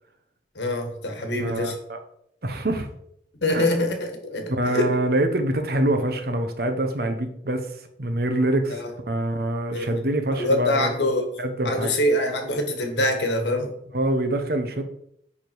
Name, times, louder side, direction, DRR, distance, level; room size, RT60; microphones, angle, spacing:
voice 1, 0.5-1.7 3.4-4.9 8.8-8.9 9.7-10.0 10.4-11.2 11.6-13.7, left 1 dB, 85° left, 4 dB, 1.6 m, -24 dB
voice 2, 1.4-2.0 2.4-2.9 3.5-3.7 4.5-7.7 8.0-8.8 9.1-10.9 11.4-12.0 13.9-14.8, right 1 dB, 60° right, 7 dB, 0.9 m, -25 dB
9.4 x 3.7 x 4.6 m, 0.72 s
head